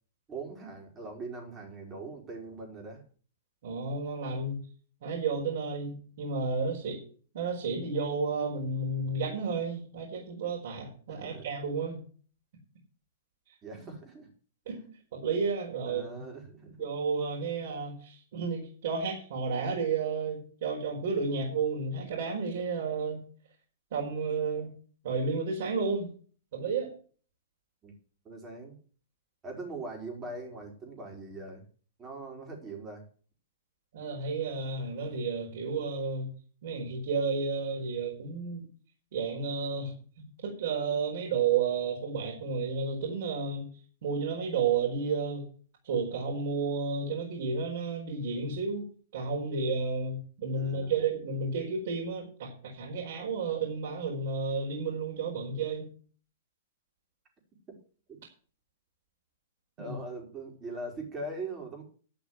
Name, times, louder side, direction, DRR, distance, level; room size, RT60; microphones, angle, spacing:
voice 1, 0.3-3.0 11.1-11.5 13.6-14.3 15.8-16.9 27.8-27.9 28.2-28.8 29.4-31.6 32.0-33.0 50.6-51.0 58.1-58.2 59.8-61.8, right 2 dB, 20° right, 1 dB, 4.7 m, -41 dB
voice 2, 3.6-4.6 5.0-7.0 7.3-12.0 14.7-14.8 15.1-16.0 16.8-23.2 23.9-24.7 25.0-26.1 26.5-26.9 33.9-36.3 36.6-38.6 39.1-43.7 44.0-45.5 45.8-48.8 49.1-55.9 59.8-59.9, right 4 dB, 65° right, -3 dB, 4.7 m, -32 dB
12.0 x 6.1 x 8.1 m, 0.42 s
hypercardioid pair, 145°, 0 cm